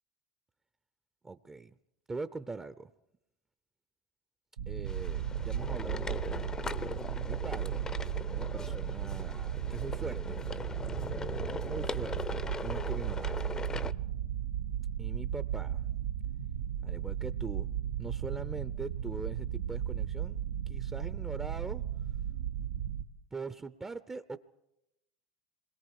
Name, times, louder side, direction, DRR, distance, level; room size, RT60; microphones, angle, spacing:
voice 1, 1.2-1.7 2.1-2.9 4.7-6.5 7.2-7.9 8.1-10.4 11.6-13.4 15.0-15.8 16.8-17.7 18.0-20.4 20.7-21.8 23.3-24.4, right 3 dB, 15° right, 12 dB, 0.7 m, -42 dB
sound 1, 4.6-23.0, right 10 dB, 85° right, 1.0 m, -35 dB
sound 2, 4.9-13.9, left 4 dB, 20° left, 0.7 m, -40 dB
27.0 x 21.5 x 4.8 m, 0.87 s
hypercardioid pair, 100°, 3 cm